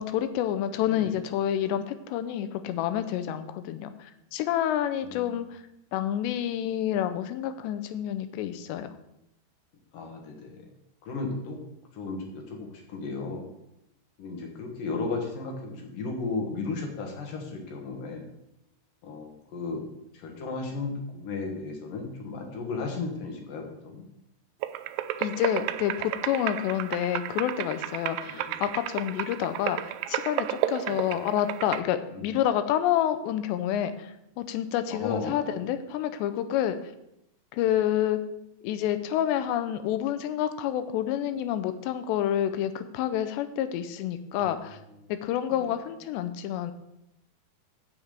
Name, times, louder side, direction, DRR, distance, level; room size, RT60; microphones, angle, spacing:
voice 1, 0.0-5.6 5.9-8.9 25.2-36.8 37.5-38.2 38.6-44.8 45.1-46.7, left 11 dB, 85° left, 10 dB, 2.9 m, -28 dB
voice 2, 5.0-5.4 9.9-10.7 11.0-11.6 11.9-13.5 14.2-18.3 19.0-19.8 20.1-24.1 28.3-28.6 30.9-31.1 32.1-32.3 34.9-35.3 44.3-44.5, left 3 dB, 60° left, 2 dB, 3.0 m, -35 dB
sound 1, 24.6-31.8, right 13 dB, 85° right, 2.5 m, -32 dB
7.2 x 7.2 x 8.1 m, 0.84 s
omnidirectional pair, 4.9 m